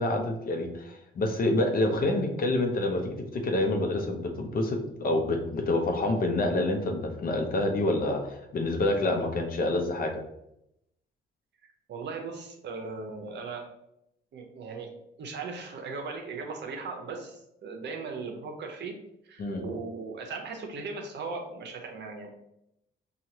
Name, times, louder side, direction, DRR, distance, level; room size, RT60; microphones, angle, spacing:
voice 1, 0.0-10.2 19.4-19.6, left 2 dB, 45° left, 3 dB, 0.7 m, -27 dB
voice 2, 11.9-13.7 14.3-14.9 15.2-19.0 19.2-22.3, right 4 dB, 60° right, 3 dB, 0.8 m, -38 dB
4.6 x 2.4 x 2.8 m, 0.81 s
cardioid pair, 90°, 20 cm